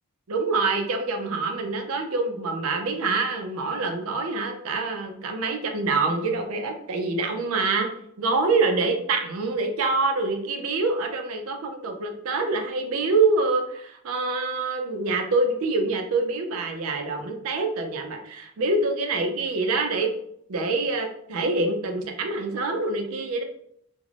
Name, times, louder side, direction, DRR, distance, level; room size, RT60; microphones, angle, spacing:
voice 1, 0.3-7.9 8.2-20.1 20.5-23.4, right 3 dB, 80° right, 4 dB, 0.5 m, -25 dB
2.4 x 2.1 x 3.2 m, 0.71 s
head